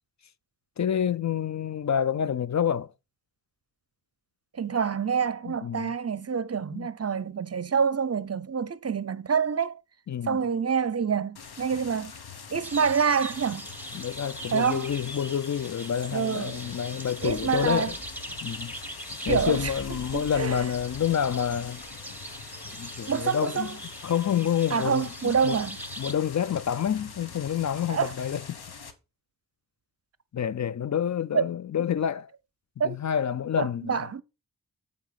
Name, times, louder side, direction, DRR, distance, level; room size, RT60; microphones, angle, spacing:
voice 1, 0.8-2.9 5.5-5.9 6.7-6.9 10.1-10.5 13.9-18.0 18.4-18.7 19.2-21.8 22.7-23.8 24.0-25.6 26.0-28.6 30.3-32.3 32.8-33.9, left 9 dB, 50° left, 0.5 m, -28 dB
voice 2, 4.5-9.8 10.2-12.1 12.5-13.7 14.5-14.9 16.1-16.6 17.2-17.9 19.3-19.7 20.1-20.6 23.1-23.7 24.7-25.8 27.9-28.1 31.3-31.4 32.8-33.0 33.6-34.2, right 6 dB, 40° right, 0.6 m, -27 dB
sound 1, 11.4-28.9, left 6 dB, 85° left, 1.2 m, -44 dB
sound 2, 12.6-26.1, right 1 dB, 5° right, 1.3 m, -42 dB
sound 3, 16.9-23.1, right 1 dB, 20° left, 1.8 m, -46 dB
8.2 x 4.1 x 5.7 m
cardioid pair, 45°, 37 cm